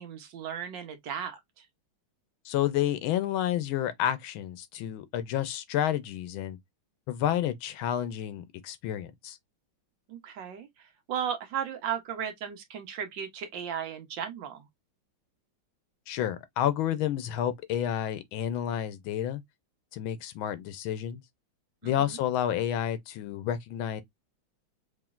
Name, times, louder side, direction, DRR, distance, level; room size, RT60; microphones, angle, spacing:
voice 1, 0.0-1.7 10.1-10.7 11.1-14.6 21.8-22.2, right 8 dB, 65° right, 1.5 m, -35 dB
voice 2, 2.4-6.6 7.1-9.4 16.1-19.4 19.9-21.2 21.8-24.0, left 11 dB, 80° left, 1.4 m, -30 dB
4.9 x 3.1 x 2.3 m
omnidirectional pair, 2.3 m